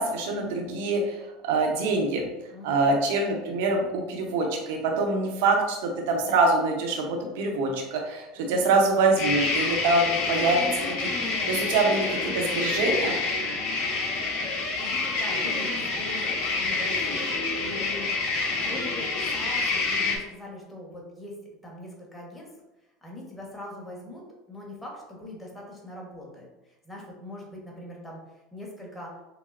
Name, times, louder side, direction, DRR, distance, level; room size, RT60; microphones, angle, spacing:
voice 1, 0.0-2.3 2.6-13.2, right 3 dB, 75° right, 1 dB, 0.8 m, -25 dB
voice 2, 2.5-3.0 8.4-8.8 14.8-18.1 18.5-21.4 21.6-22.5 23.0-29.2, left 1 dB, 10° left, -3 dB, 1.3 m, -42 dB
sound 1, 9.2-20.2, left 3 dB, 60° left, 0.9 m, -27 dB
5.9 x 2.0 x 2.6 m, 1.0 s
hypercardioid pair, 95°, 0 cm